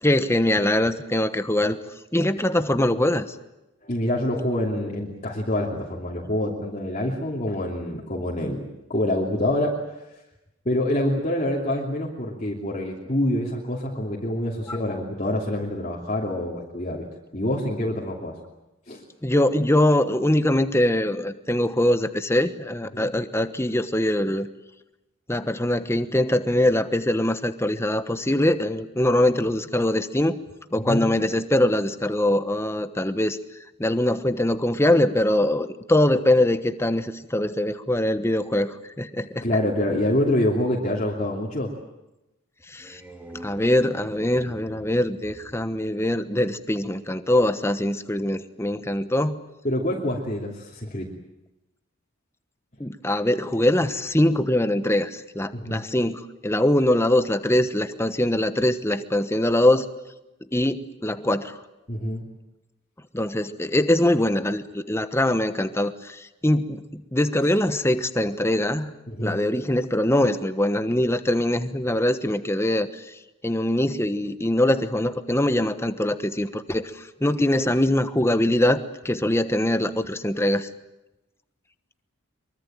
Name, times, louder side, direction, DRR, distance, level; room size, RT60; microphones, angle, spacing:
voice 1, 0.0-1.8 2.1-3.3 14.7-14.8 19.2-24.5 25.3-30.4 30.7-33.4 33.8-39.4 42.7-43.0 43.4-49.4 52.8-59.9 60.5-61.6 63.1-68.9 69.2-73.2 73.4-80.7, left 1 dB, 10° left, 11 dB, 1.1 m, -23 dB
voice 2, 3.8-8.6 8.9-9.7 10.6-17.1 17.3-18.4 18.9-19.0 22.9-23.1 30.7-31.1 39.4-41.7 49.6-51.1 55.5-55.8 61.9-62.2 69.1-69.4, left 1 dB, 35° left, -3 dB, 3.0 m, -26 dB
sound 1, 42.6-46.8, equal, 10° right, 3.1 m, -46 dB
24.0 x 23.5 x 9.0 m, 0.96 s
head